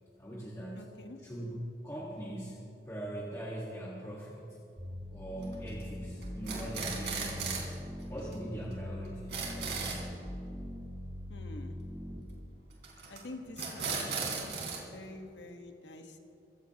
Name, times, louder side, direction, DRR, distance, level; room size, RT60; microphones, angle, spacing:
voice 1, 0.2-0.9 1.2-4.5 5.1-7.7 8.1-9.4, right 1 dB, 15° left, -5 dB, 1.6 m, -41 dB
voice 2, 0.7-1.2 11.3-11.9 13.1-16.2, left 2 dB, 90° left, 5 dB, 1.4 m, -47 dB
sound 1, 4.8-12.2, left 1 dB, 25° right, 1.6 m, -42 dB
sound 2, 5.4-5.8 6.2-7.7 8.0-8.1 8.3-8.4 8.7-8.8 9.1-10.0 12.8-13.2 13.6-14.8, right 5 dB, 80° right, 3.7 m, -36 dB
25.0 x 15.5 x 3.0 m, 2.8 s
head